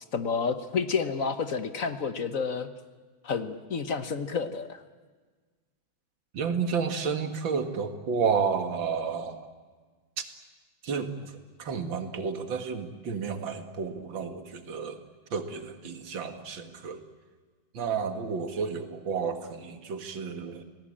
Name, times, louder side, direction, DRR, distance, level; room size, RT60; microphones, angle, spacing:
voice 1, 0.0-2.7 3.2-4.8, left 5 dB, 50° left, 10 dB, 1.4 m, -30 dB
voice 2, 6.3-9.5 10.2-10.3 10.8-15.0 15.3-17.0 17.7-20.6, right 6 dB, 90° right, 8 dB, 2.5 m, -31 dB
28.5 x 18.5 x 8.8 m, 1.4 s
omnidirectional pair, 2.0 m